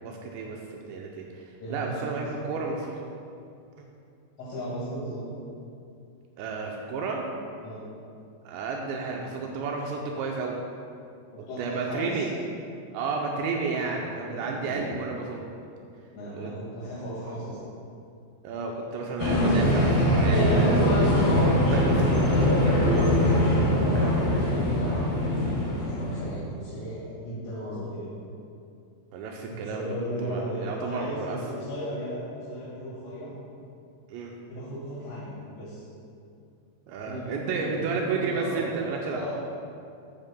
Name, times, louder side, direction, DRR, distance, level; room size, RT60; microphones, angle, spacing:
voice 1, 0.0-3.0 6.4-7.3 8.4-10.6 11.6-12.3 12.9-15.5 16.3-16.5 18.4-21.2 21.5-23.1 23.9-24.1 29.1-31.4 34.1-34.3 36.9-39.2, right 4 dB, 90° right, 0 dB, 2.5 m, -32 dB
voice 2, 1.6-2.3 4.4-5.3 7.6-7.9 11.3-12.3 14.2-15.1 16.1-17.6 23.5-28.1 29.5-32.2 32.5-33.4 34.5-35.9 37.1-38.7 39.1-39.3, equal, 75° left, -9 dB, 4.3 m, -36 dB
sound 1, 19.2-26.4, equal, 55° left, 3.7 m, -22 dB
14.0 x 8.8 x 2.2 m, 2.5 s
omnidirectional pair, 5.9 m